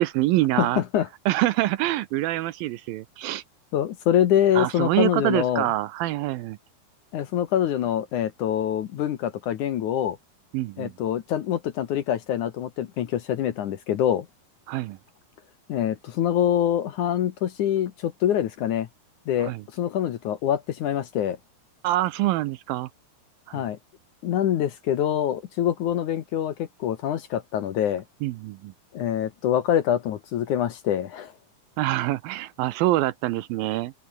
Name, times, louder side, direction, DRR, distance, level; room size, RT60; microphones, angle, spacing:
voice 1, 0.0-0.8 1.3-3.4 4.5-6.6 10.5-10.9 14.7-15.0 19.4-19.6 21.8-22.9 23.5-23.6 28.2-28.7 31.8-33.9, right 16 dB, 75° right, 2.3 m, -25 dB
voice 2, 0.6-1.1 3.7-5.7 7.1-10.2 10.8-14.3 15.7-18.9 19.3-21.4 23.5-23.8 24.2-28.0 28.9-31.3, left 10 dB, 65° left, 2.2 m, -25 dB
open air
omnidirectional pair, 4.6 m